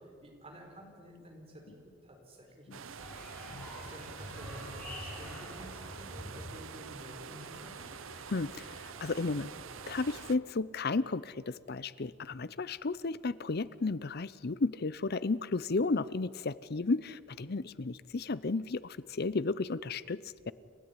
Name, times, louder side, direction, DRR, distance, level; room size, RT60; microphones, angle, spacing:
voice 1, 0.0-3.0 3.6-8.0, equal, 30° right, 1 dB, 5.0 m, -51 dB
sound 1, 2.7-10.4, right 7 dB, 70° right, 0.7 m, -46 dB
sound 2, 3.0-10.3, left 1 dB, 10° left, 7.1 m, -48 dB
voice 2, 8.3-9.5 9.9-20.2 20.5-20.6, left 3 dB, 50° left, 18 dB, 0.6 m, -33 dB
29.5 x 13.5 x 9.8 m, 2.2 s
head